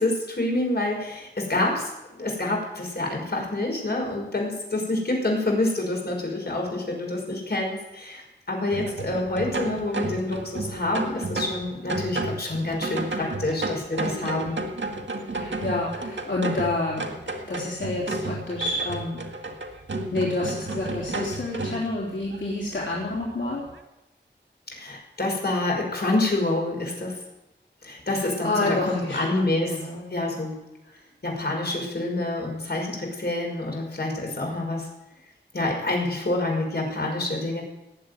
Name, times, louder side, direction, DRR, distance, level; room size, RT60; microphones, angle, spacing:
voice 1, 0.0-1.9 2.2-8.2 8.5-14.6 24.7-27.2 27.8-29.8 30.1-30.6 31.2-34.9 35.5-37.6, left 2 dB, 60° left, 0 dB, 5.5 m, -27 dB
sound 1, 8.7-21.9 22.3-22.4 22.8-23.2 23.7-23.8, right 2 dB, 90° right, 1.8 m, -32 dB
voice 2, 15.3-17.2 17.5-19.2 20.1-23.6 28.4-30.1, left 2 dB, 85° left, -5 dB, 3.6 m, -28 dB
19.0 x 7.7 x 9.5 m, 0.97 s
wide cardioid pair, 75°, 19 cm